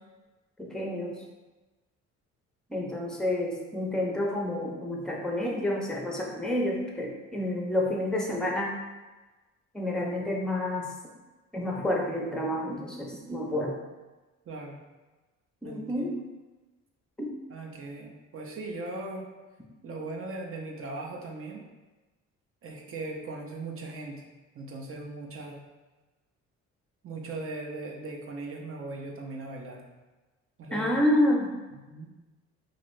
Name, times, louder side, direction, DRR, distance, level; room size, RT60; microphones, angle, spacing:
voice 1, 0.6-1.2 2.7-8.8 9.7-10.9 11.5-13.8 15.6-16.2 17.2-17.3 30.7-31.5, left 1 dB, ahead, -1 dB, 0.6 m, -29 dB
voice 2, 14.5-14.8 15.6-16.0 17.5-19.3 19.8-21.6 22.6-24.2 24.5-25.6 27.0-29.8 30.6-30.9 31.9-32.1, right 2 dB, 45° right, 0 dB, 0.6 m, -39 dB
2.8 x 2.6 x 3.1 m, 1.2 s
cardioid pair, 90°, 30 cm